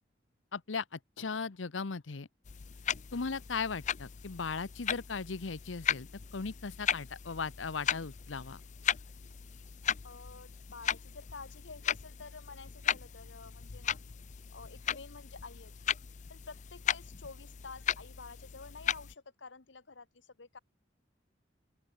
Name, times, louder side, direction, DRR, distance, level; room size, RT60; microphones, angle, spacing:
voice 1, 0.5-2.3 3.1-8.6, left 4 dB, 90° left, 0.8 m, -37 dB
sound 1, 2.4-19.2, left 9 dB, 40° left, 0.5 m, -37 dB
voice 2, 10.0-14.0 14.5-15.7 16.3-20.6, left 4 dB, 75° left, 1.4 m, -50 dB
open air
head